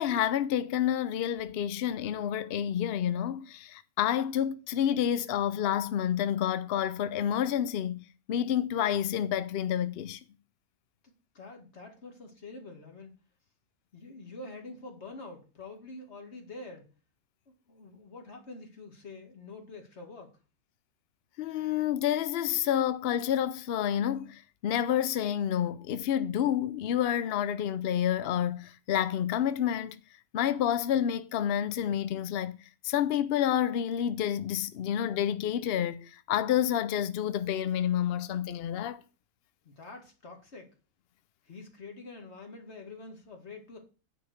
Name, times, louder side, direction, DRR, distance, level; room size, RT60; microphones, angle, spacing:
voice 1, 0.0-10.2 21.4-30.0 30.3-32.6 32.8-39.0, left 10 dB, 70° left, 0.6 m, -29 dB
voice 2, 11.3-13.1 13.9-16.9 17.5-20.4 39.6-40.7 41.5-43.8, left 3 dB, 45° left, 2.2 m, -46 dB
9.2 x 4.8 x 6.4 m
omnidirectional pair, 1.6 m